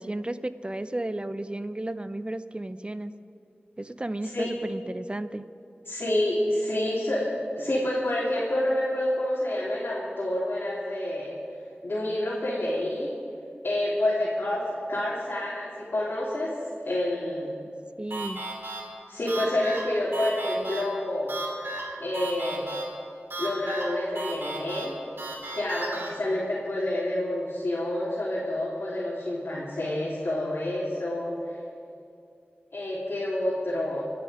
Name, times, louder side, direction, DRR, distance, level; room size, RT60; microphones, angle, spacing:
voice 1, 0.0-3.1 3.8-5.4 18.0-18.4, right 1 dB, 25° right, 13 dB, 0.5 m, -33 dB
voice 2, 5.8-11.3 11.8-13.1 13.6-16.5 16.8-17.5 19.1-21.7 22.0-22.7 23.4-25.0 25.5-31.6 32.7-34.0, left 1 dB, 70° left, -9 dB, 3.2 m, -28 dB
sound 1, 18.1-26.1, right 2 dB, 70° right, 3.0 m, -36 dB
26.5 x 9.4 x 5.0 m, 2.4 s
wide cardioid pair, 65°, 4 cm